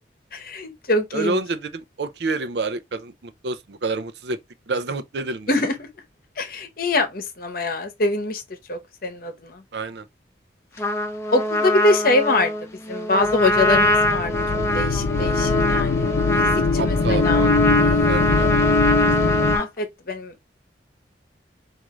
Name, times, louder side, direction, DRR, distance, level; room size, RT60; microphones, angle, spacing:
voice 1, 0.3-1.4 5.5-5.7 6.4-8.4 8.7-9.6 11.3-12.5 12.9-14.3 14.7-16.1 16.4-18.4 18.9-20.3, left 2 dB, 55° left, 0.9 m, -24 dB
voice 2, 1.1-4.4 4.7-5.6 9.7-10.1 16.8-17.6 18.1-18.5, right 3 dB, 70° right, 0.5 m, -28 dB
Trumpet, 10.8-19.7, left 1 dB, 15° left, 0.6 m, -23 dB
sound 1, 13.2-19.6, left 3 dB, 85° left, 0.6 m, -22 dB
4.8 x 2.6 x 3.0 m
head